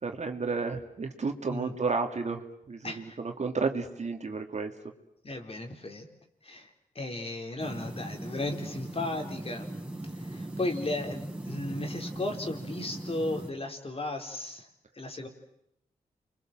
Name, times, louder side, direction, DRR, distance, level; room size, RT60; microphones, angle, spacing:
voice 1, 0.0-4.7, right 4 dB, 50° right, 4 dB, 2.7 m, -32 dB
voice 2, 2.8-3.2 5.2-6.1 6.4-9.7 10.2-14.7 15.0-15.3, left 2 dB, 40° left, 3 dB, 4.4 m, -35 dB
sound 1, 7.6-13.5, right 1 dB, 10° right, 4.9 m, -39 dB
29.0 x 23.5 x 7.6 m, 0.77 s
cardioid pair, 55°, 15 cm